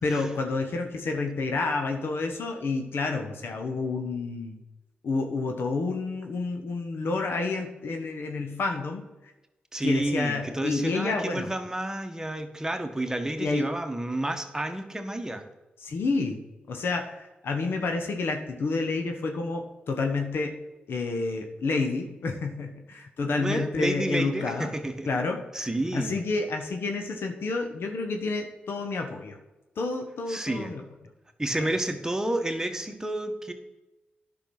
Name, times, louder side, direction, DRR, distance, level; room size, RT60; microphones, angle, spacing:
voice 1, 0.0-4.6 5.0-9.1 9.8-11.5 13.4-13.7 15.8-16.4 16.7-20.6 20.9-24.7 25.1-29.4 29.8-30.8 31.6-31.7, left 3 dB, 70° left, 4 dB, 1.2 m, -29 dB
voice 2, 9.7-15.4 23.3-25.1 25.5-26.2 30.3-30.7 31.4-33.5, right 1 dB, 15° right, 5 dB, 1.5 m, -30 dB
10.0 x 6.1 x 6.1 m, 1.0 s
supercardioid pair, 45°, 4 cm